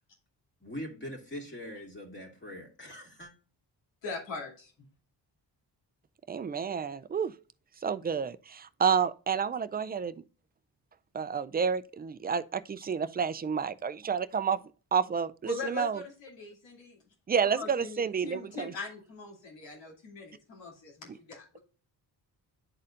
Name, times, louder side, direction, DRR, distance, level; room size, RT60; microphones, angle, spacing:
voice 1, 0.6-3.3, equal, 25° left, 2.2 m, -42 dB
voice 2, 4.0-4.7 15.5-17.0 17.4-21.6, left 3 dB, 85° left, 2.6 m, -41 dB
voice 3, 6.3-7.3 7.8-10.1 11.1-14.6 14.9-16.0 17.3-18.7, right 6 dB, 25° right, 0.4 m, -30 dB
10.5 x 4.1 x 2.5 m
cardioid pair, 80°, 43 cm